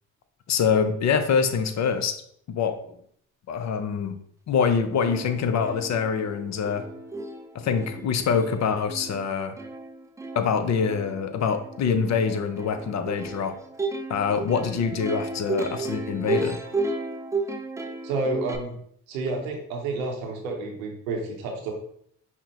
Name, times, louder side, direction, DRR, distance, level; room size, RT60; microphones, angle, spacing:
voice 1, 0.5-2.1 2.5-2.8 3.5-4.2 4.5-6.9 7.5-9.5 10.3-13.5 14.1-16.6, left 6 dB, 45° left, 9 dB, 0.6 m, -25 dB
Plucked string instrument, 4.7-4.8 5.0-18.6, right 2 dB, 10° right, 0.3 m, -34 dB
voice 2, 18.0-18.8 19.1-21.7, right 3 dB, 90° right, 1 dB, 0.8 m, -30 dB
5.6 x 2.1 x 2.9 m, 0.66 s
hypercardioid pair, 60°, 40 cm